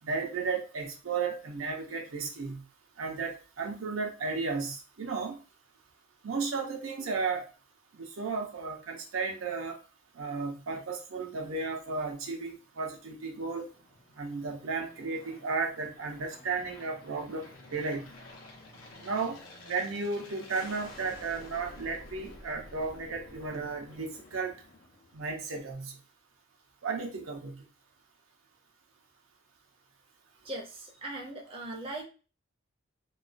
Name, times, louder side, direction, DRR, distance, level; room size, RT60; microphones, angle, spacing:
voice 1, 0.0-2.6 3.0-5.4 6.2-7.5 7.9-9.8 10.1-13.7 14.2-18.1 19.0-19.4 19.7-24.6 25.1-26.0 26.8-27.6, right 4 dB, 85° right, 2 dB, 0.6 m, -34 dB
Aircraft, 12.7-25.5, left 2 dB, 90° left, 0.6 m, -51 dB
voice 2, 30.4-32.0, right 1 dB, 30° right, -1 dB, 0.5 m, -39 dB
2.3 x 2.2 x 2.4 m, 0.35 s
head